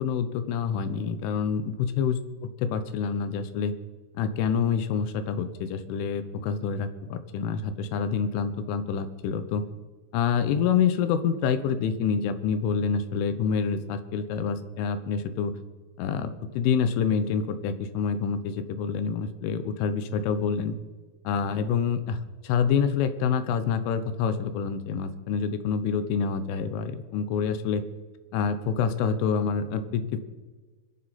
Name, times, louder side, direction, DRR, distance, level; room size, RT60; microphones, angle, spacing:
voice 1, 0.0-3.8 4.2-9.6 10.1-15.6 16.0-20.8 21.3-22.2 22.5-27.8 28.3-30.2, left 6 dB, 85° left, 11 dB, 3.5 m, -27 dB
25.5 x 10.5 x 4.3 m, 1.3 s
omnidirectional pair, 5.5 m